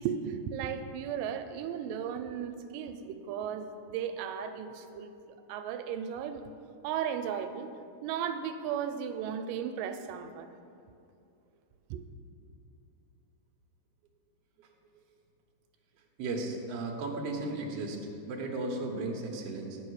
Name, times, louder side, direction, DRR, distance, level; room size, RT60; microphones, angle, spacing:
voice 1, 0.0-5.1 5.5-6.4 6.8-7.7 8.0-10.5 11.9-12.0, right 8 dB, 85° right, 8 dB, 2.2 m, -35 dB
voice 2, 16.2-18.0 18.3-19.8, right 2 dB, 65° right, 1 dB, 1.7 m, -35 dB
9.2 x 5.3 x 6.3 m, 2.6 s
omnidirectional pair, 3.8 m